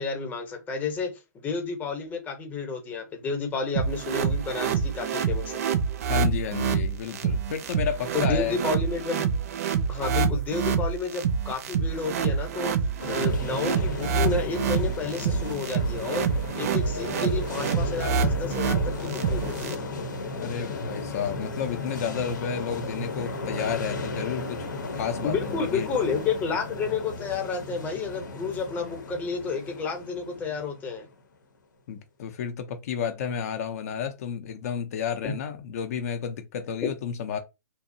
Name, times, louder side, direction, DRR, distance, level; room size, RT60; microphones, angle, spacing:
voice 1, 0.0-5.6 8.1-9.3 9.9-12.8 13.0-16.3 16.5-19.8 25.2-31.1 35.2-35.3 36.8-36.9, left 4 dB, 15° left, 0.7 m, -31 dB
Sidechain Pulse, 3.8-19.7, right 6 dB, 50° right, 0.4 m, -27 dB
voice 2, 6.1-8.6 20.4-25.9 31.9-37.4, left 7 dB, 55° left, 0.5 m, -31 dB
sound 1, 13.0-31.2, left 2 dB, 85° left, 0.8 m, -35 dB
2.7 x 2.0 x 2.6 m
hypercardioid pair, 135°, 10 cm